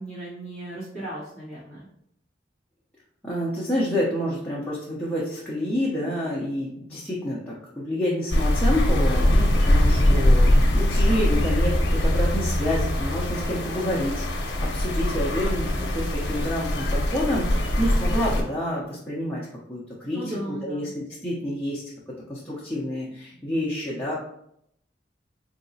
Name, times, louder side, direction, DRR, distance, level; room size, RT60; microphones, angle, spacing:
voice 1, 0.0-1.9 20.1-20.9, right 1 dB, 55° right, -11 dB, 1.4 m, -36 dB
voice 2, 3.2-19.4 19.7-20.2 20.5-21.8 22.3-24.1, equal, 10° left, -7 dB, 0.6 m, -28 dB
sound 1, 8.3-18.4, left 1 dB, 65° left, 0.7 m, -22 dB
4.1 x 2.8 x 2.7 m, 0.74 s
head